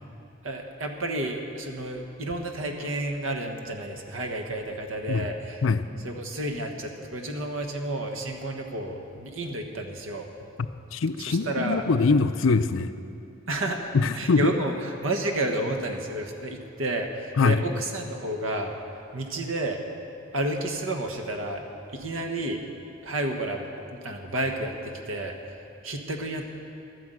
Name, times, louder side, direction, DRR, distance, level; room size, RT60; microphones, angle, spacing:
voice 1, 0.4-5.6 6.0-10.3 11.2-11.9 13.5-18.8 19.1-19.8 20.3-21.7 21.9-22.6 23.0-26.4, right 1 dB, 85° right, 3 dB, 1.3 m, -31 dB
voice 2, 10.9-12.9 13.9-14.5 17.4-17.6, left 4 dB, 80° left, 12 dB, 0.5 m, -22 dB
12.0 x 9.5 x 7.8 m, 2.6 s
head